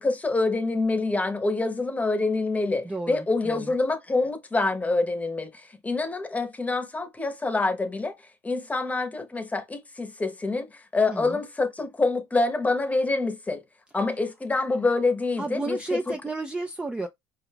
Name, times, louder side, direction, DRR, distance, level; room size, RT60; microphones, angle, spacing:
voice 1, 0.0-8.1 8.4-13.6 13.9-16.1, left 3 dB, 15° left, 0.9 m, -26 dB
voice 2, 2.8-3.7 11.1-11.4 15.4-17.1, right 3 dB, 10° right, 0.4 m, -32 dB
4.9 x 2.3 x 3.3 m
cardioid pair, 120°, 11 cm